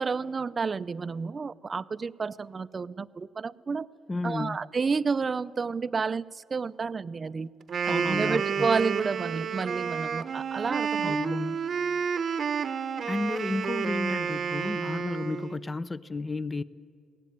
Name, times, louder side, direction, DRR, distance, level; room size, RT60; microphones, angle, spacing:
voice 1, 0.0-3.9 4.2-7.5 7.8-11.2, right 5 dB, 35° right, 15 dB, 0.5 m, -30 dB
voice 2, 4.1-4.6 7.9-8.7 11.0-11.6 13.1-16.6, left 3 dB, 25° left, 17 dB, 0.6 m, -32 dB
Wind instrument woodwind instrument, 7.6-15.6, right 7 dB, 55° right, 0.9 m, -30 dB
21.5 x 17.5 x 9.3 m, 2.3 s
cardioid pair, 90°, 0 cm